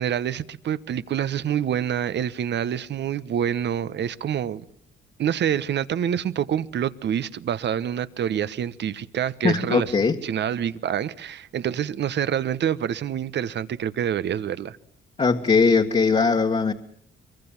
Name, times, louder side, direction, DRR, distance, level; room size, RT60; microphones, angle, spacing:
voice 1, 0.0-4.6 5.2-9.9 10.2-14.8, right 9 dB, 60° right, 1.2 m, -26 dB
voice 2, 9.4-10.2 15.2-16.7, left 4 dB, 30° left, 1.7 m, -20 dB
23.5 x 23.0 x 7.3 m
cardioid pair, 90°, 20 cm